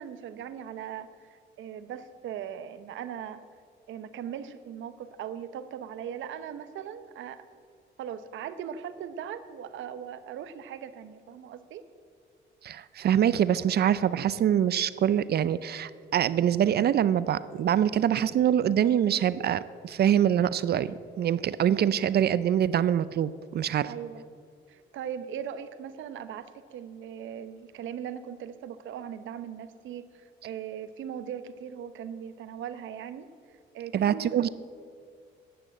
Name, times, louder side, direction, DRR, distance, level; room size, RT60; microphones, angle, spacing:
voice 1, 0.0-3.4 3.9-7.4 8.0-11.8 23.9-24.2 24.7-33.3 33.7-34.5, right 9 dB, 75° right, 12 dB, 0.8 m, -39 dB
voice 2, 12.6-23.9 33.9-34.5, right 10 dB, 55° right, 17 dB, 0.5 m, -24 dB
10.5 x 8.6 x 7.8 m, 2.2 s
cardioid pair, 90°, 20 cm